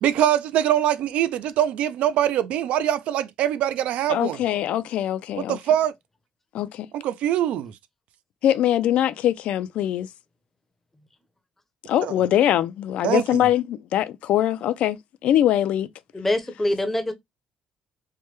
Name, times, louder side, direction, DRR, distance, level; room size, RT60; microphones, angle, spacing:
voice 1, 0.0-4.4 5.5-5.9 6.9-7.7 12.0-12.1 13.0-13.4, right 11 dB, 75° right, 0.3 m, -23 dB
voice 2, 4.1-5.6 6.5-6.9 8.4-10.1 11.8-15.0 15.2-15.9, left 11 dB, 70° left, 0.3 m, -22 dB
voice 3, 16.1-17.1, left 1 dB, 10° left, 0.6 m, -24 dB
3.2 x 2.2 x 3.1 m
cardioid pair, 125°, 2 cm